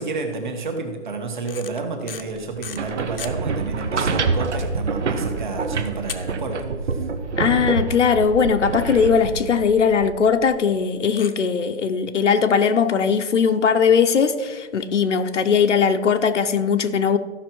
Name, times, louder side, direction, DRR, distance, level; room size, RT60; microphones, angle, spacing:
voice 1, 0.0-7.1, right 3 dB, 40° right, 1.6 m, -30 dB
sound 1, 1.4-3.3 3.9-4.0 4.3-4.4 4.9-5.0 6.1-6.9 7.2-7.3 7.8-7.9 8.1-8.2 8.5-8.6 9.8-9.9 11.1-11.3, left 7 dB, 55° left, 0.8 m, -36 dB
sound 2, 2.5-10.6, right 4 dB, 75° right, 1.2 m, -26 dB
voice 2, 7.4-17.2, left 6 dB, 80° left, 1.0 m, -19 dB
14.5 x 5.9 x 4.6 m
hypercardioid pair, 175°, 35 cm